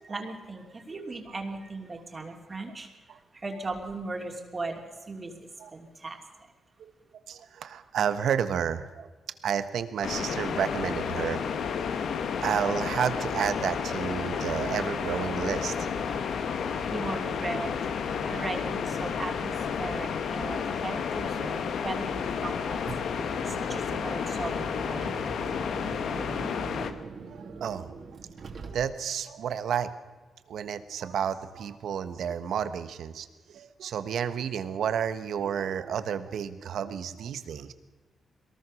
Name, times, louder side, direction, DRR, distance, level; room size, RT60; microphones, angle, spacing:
voice 1, 0.0-6.5 16.9-17.8 18.2-22.8 23.1-25.3, right 3 dB, 30° right, 3 dB, 2.9 m, -38 dB
voice 2, 7.3-9.1 9.4-11.4 12.4-15.9 23.2-23.5 26.3-26.4 27.3-27.9 28.7-29.9 30.5-37.7, right 8 dB, 75° right, 11 dB, 1.4 m, -31 dB
sound 1, 10.0-26.9, left 6 dB, 75° left, 1.5 m, -31 dB
Car, 22.7-29.2, right 4 dB, 50° right, 2.7 m, -43 dB
22.0 x 19.0 x 6.4 m, 1.2 s
cardioid pair, 95°, 0 cm